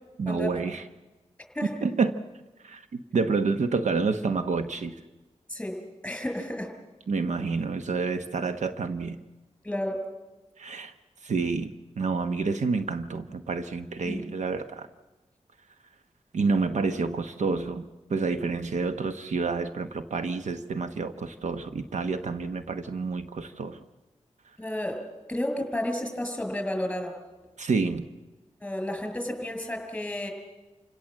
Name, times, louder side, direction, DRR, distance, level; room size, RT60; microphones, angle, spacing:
voice 1, 0.2-0.8 1.8-2.2 2.6-4.9 7.1-9.2 10.6-10.9 11.2-14.9 16.3-23.8 27.6-28.0, right 4 dB, 80° right, 9 dB, 1.1 m, -28 dB
voice 2, 5.5-6.7 9.6-10.0 14.0-14.2 24.6-25.0 25.3-27.1 28.6-30.3, left 1 dB, 5° left, 3 dB, 6.3 m, -31 dB
28.5 x 17.0 x 7.6 m, 1.2 s
cardioid pair, 70°, 12 cm